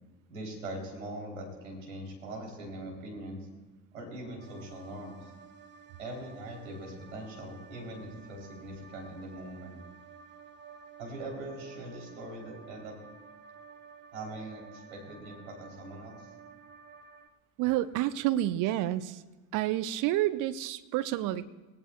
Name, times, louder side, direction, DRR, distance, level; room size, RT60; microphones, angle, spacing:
voice 1, 0.3-3.4 3.9-5.2 6.0-9.8 11.0-13.0 14.1-16.3, right 1 dB, 75° right, -1 dB, 3.9 m, -42 dB
sound 1, 4.4-17.3, right 6 dB, 25° right, 1.2 m, -52 dB
voice 2, 17.6-19.2 19.5-21.5, right 14 dB, 50° right, 14 dB, 0.8 m, -29 dB
21.0 x 18.0 x 2.5 m, 1.2 s
figure-of-eight pair, 55°, 41 cm